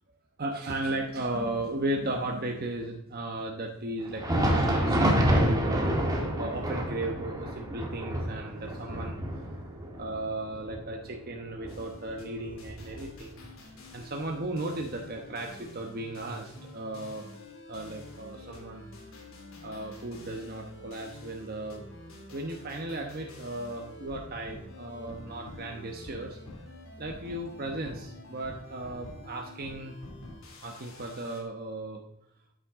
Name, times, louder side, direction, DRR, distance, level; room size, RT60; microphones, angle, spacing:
voice 1, 0.4-9.6 9.9-13.5 13.9-17.3 17.7-18.8 19.6-21.8 22.3-26.4 27.0-30.0 30.6-32.0, right 1 dB, 45° right, 1 dB, 1.1 m, -36 dB
Thunder, 4.0-13.5 13.8-14.0 14.7-14.9 15.9-16.0, equal, 15° right, 1.6 m, -29 dB
sound 1, 11.7-31.4, left 1 dB, 70° left, 2.7 m, -47 dB
13.5 x 9.0 x 3.7 m, 0.77 s
head